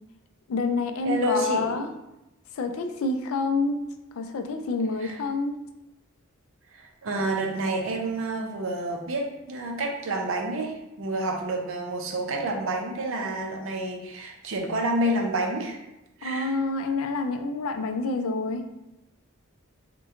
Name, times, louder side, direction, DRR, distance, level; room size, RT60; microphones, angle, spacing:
voice 1, 0.5-1.9 2.6-3.9 4.1-5.6 16.2-18.6, left 3 dB, 75° left, 6 dB, 0.3 m, -27 dB
voice 2, 1.0-1.8 5.0-5.2 6.7-15.8 16.2-16.5, right 2 dB, 65° right, 2 dB, 0.5 m, -29 dB
2.9 x 2.2 x 3.5 m, 0.93 s
head